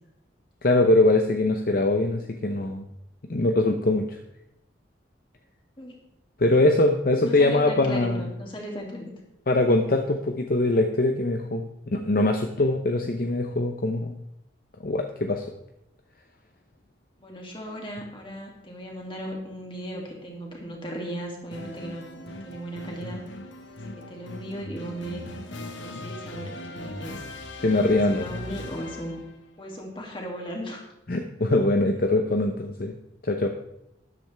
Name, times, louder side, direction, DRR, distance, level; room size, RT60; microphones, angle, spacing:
voice 1, 0.6-2.9 3.3-4.2 6.4-8.2 9.5-14.1 14.8-15.4 27.6-28.3 31.1-32.9 33.2-33.5, left 2 dB, 50° left, 5 dB, 0.7 m, -22 dB
voice 2, 7.2-9.1 17.2-23.2 23.8-25.3 25.8-27.2 27.6-29.2 29.6-30.9, equal, 25° left, 0 dB, 2.4 m, -37 dB
sound 1, 21.5-29.4, left 1 dB, 80° left, 1.3 m, -39 dB
13.0 x 10.5 x 3.4 m, 0.83 s
head